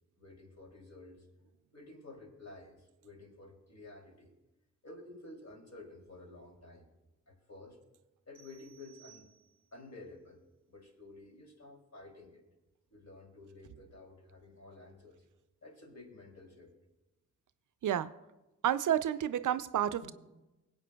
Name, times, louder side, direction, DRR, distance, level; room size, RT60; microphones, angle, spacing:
voice 1, 0.2-1.3 1.7-4.3 4.8-6.9 7.3-7.8 8.3-9.3 9.7-10.4 10.7-12.4 12.9-15.2 15.6-16.7 20.0-20.1, left 2 dB, 55° left, 2.9 m, -52 dB
sound 1, 8.3-9.9, right 11 dB, 35° left, 2.9 m, -61 dB
voice 2, 18.6-20.1, right 10 dB, 70° right, 0.5 m, -30 dB
25.0 x 8.4 x 2.3 m
cardioid pair, 45°, 32 cm